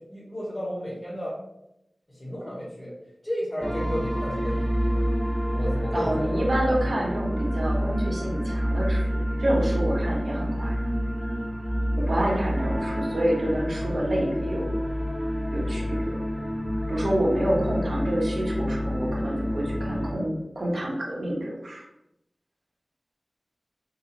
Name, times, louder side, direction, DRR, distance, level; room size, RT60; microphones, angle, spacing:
voice 1, 0.1-1.3 2.1-2.9 3.2-5.0 5.5-6.4, equal, 30° left, -7 dB, 1.4 m, -32 dB
sound 1, 3.6-20.1, equal, 10° right, 0.6 m, -28 dB
voice 2, 5.9-10.8 12.0-14.7 15.5-16.2 16.9-21.8, right 1 dB, 75° right, -3 dB, 0.9 m, -28 dB
3.9 x 2.0 x 4.0 m, 0.84 s
wide cardioid pair, 55°, 0 cm